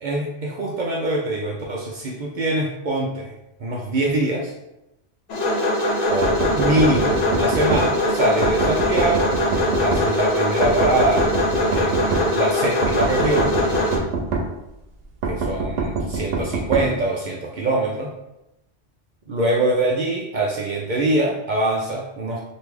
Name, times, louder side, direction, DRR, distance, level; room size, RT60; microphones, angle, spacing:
voice 1, 0.0-3.3 3.6-4.5 6.1-9.3 9.8-11.3 11.7-13.6 15.2-18.1 19.3-22.4, right 2 dB, 60° right, -2 dB, 0.5 m, -23 dB
sound 1, 5.3-14.0, left 1 dB, 85° left, 1.2 m, -22 dB
sound 2, 6.2-7.8 8.4-10.0 10.6-12.3 12.8-14.5 15.2-16.9, right 3 dB, 85° right, 1.0 m, -24 dB
3.0 x 2.6 x 3.5 m, 0.90 s
omnidirectional pair, 1.2 m